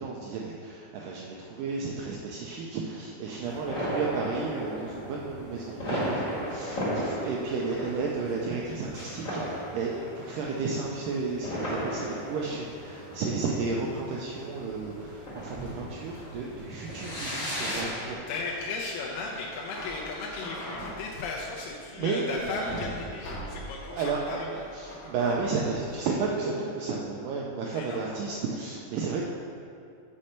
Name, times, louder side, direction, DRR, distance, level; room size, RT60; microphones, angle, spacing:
voice 1, 0.0-18.2 22.0-23.5 23.8-29.3, right 4 dB, 90° right, -2 dB, 1.9 m, -33 dB
sound 1, 3.4-18.1, equal, 40° left, 1.2 m, -36 dB
sound 2, 14.6-26.2, equal, 60° left, 1.4 m, -43 dB
voice 2, 18.3-24.5 27.7-28.1, left 3 dB, 80° left, -3 dB, 2.1 m, -36 dB
6.3 x 4.3 x 6.5 m, 2.5 s
omnidirectional pair, 4.4 m